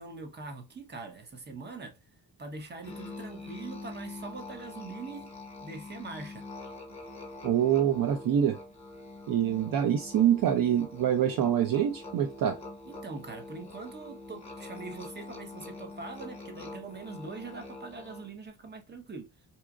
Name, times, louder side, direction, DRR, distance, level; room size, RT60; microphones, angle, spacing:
voice 1, 0.0-2.0 2.4-5.3 5.6-6.5 12.9-19.3, right 3 dB, 25° right, 0.8 m, -43 dB
Musical instrument, 2.8-18.4, left 2 dB, 15° left, 1.2 m, -44 dB
voice 2, 7.4-8.6 9.3-12.6, right 10 dB, 55° right, 0.5 m, -25 dB
4.0 x 2.3 x 2.3 m
cardioid pair, 115°, 41 cm